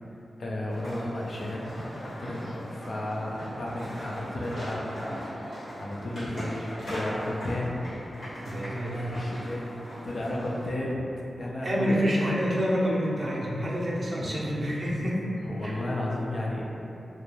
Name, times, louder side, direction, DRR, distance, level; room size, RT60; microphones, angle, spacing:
voice 1, 0.4-1.7 2.2-5.0 5.2-5.4 5.7-7.8 8.4-11.0 11.4-12.5 14.2-14.4 15.5-16.6, left 1 dB, 60° left, -3 dB, 0.4 m, -33 dB
sound 1, 0.7-10.7, equal, 80° left, 1.3 m, -39 dB
sound 2, 1.6-12.6, equal, 35° left, 1.0 m, -51 dB
voice 2, 8.5-9.4 11.6-15.2 15.6-15.7, equal, 40° right, -5 dB, 0.5 m, -28 dB
2.3 x 2.2 x 3.0 m, 2.9 s
wide cardioid pair, 85°, 0 cm